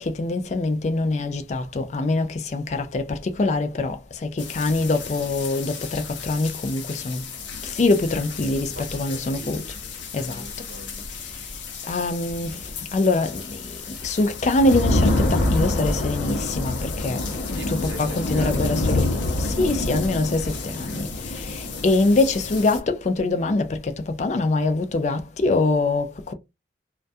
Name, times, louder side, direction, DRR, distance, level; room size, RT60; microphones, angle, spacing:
voice 1, 0.0-7.2 7.6-9.6 10.1-10.4 11.8-17.2 17.5-19.1 19.4-26.3, left 2 dB, 40° left, 0.3 m, -24 dB
sound 1, 4.4-22.8, left 2 dB, 80° left, 0.6 m, -28 dB
voice 2, 8.5-11.1 17.4-18.8, right 1 dB, 65° right, 0.5 m, -43 dB
2.2 x 2.2 x 2.6 m
head